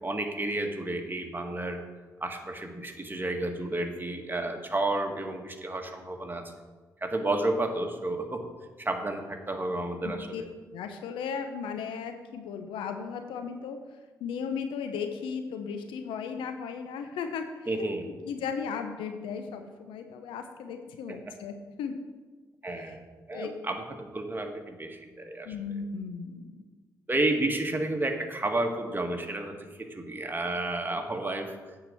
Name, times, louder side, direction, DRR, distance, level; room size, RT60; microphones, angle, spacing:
voice 1, 0.0-1.8 2.2-6.5 7.0-8.5 8.8-10.5 17.7-18.1 21.1-21.2 22.6-25.5 27.1-31.5, right 2 dB, 25° right, 4 dB, 1.7 m, -31 dB
voice 2, 10.0-10.4 10.7-13.8 14.2-17.5 18.2-21.9 23.3-23.5 25.5-26.5, left 6 dB, 80° left, 7 dB, 0.7 m, -36 dB
8.6 x 4.9 x 6.9 m, 1.3 s
hypercardioid pair, 40°, 9 cm